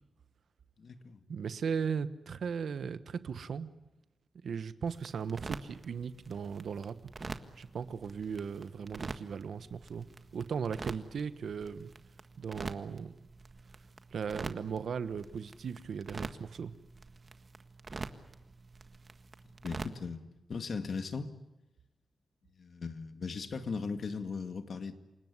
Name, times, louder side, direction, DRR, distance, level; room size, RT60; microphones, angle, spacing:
voice 1, 0.8-1.2 19.6-20.2 20.5-21.3 22.6-24.9, left 4 dB, 65° left, 8 dB, 2.1 m, -38 dB
voice 2, 1.3-3.7 4.4-7.0 7.6-10.1 10.3-11.9 12.4-13.1 14.1-16.7, right 6 dB, 75° right, 13 dB, 1.2 m, -37 dB
sound 1, 4.9-20.0, right 3 dB, 45° right, 1.7 m, -46 dB
28.5 x 18.5 x 9.7 m, 1.0 s
cardioid pair, 75°, 0 cm